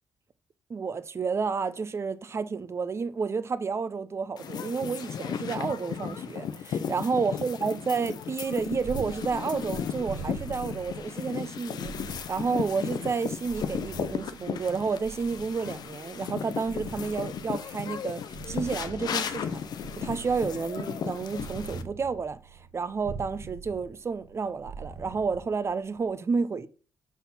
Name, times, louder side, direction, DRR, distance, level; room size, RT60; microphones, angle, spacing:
voice 1, 0.7-19.6 20.0-26.7, right 5 dB, 35° right, 0.6 m, -31 dB
sound 1, 4.4-21.8, left 8 dB, 65° left, 0.7 m, -35 dB
Purr, 8.3-26.0, right 5 dB, 80° right, 1.4 m, -44 dB
5.7 x 4.1 x 5.8 m
cardioid pair, 80°, 8 cm